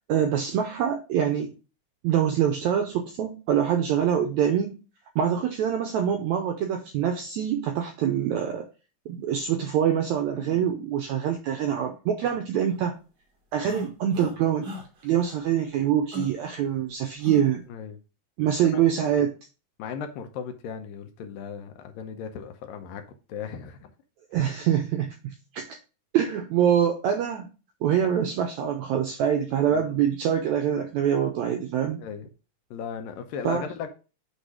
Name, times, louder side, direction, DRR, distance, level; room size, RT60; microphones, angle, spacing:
voice 1, 0.1-1.5 2.0-4.8 5.1-8.7 9.1-12.9 13.5-14.7 15.0-17.6 18.4-19.3 24.3-25.7 26.1-27.5 27.8-32.0 33.4-33.6, right 9 dB, 90° right, 1.6 m, -25 dB
voice 2, 10.3-10.7 17.7-18.0 18.6-18.8 19.8-23.9 28.0-28.1 29.6-30.0 32.0-32.3 32.7-33.9, left 7 dB, 75° left, 2.4 m, -37 dB
sound 1, 13.6-14.4 14.6-14.8 15.2-15.4 16.1-16.3 17.2-17.4, left 2 dB, 65° right, 1.0 m, -36 dB
8.2 x 3.3 x 4.8 m
omnidirectional pair, 4.2 m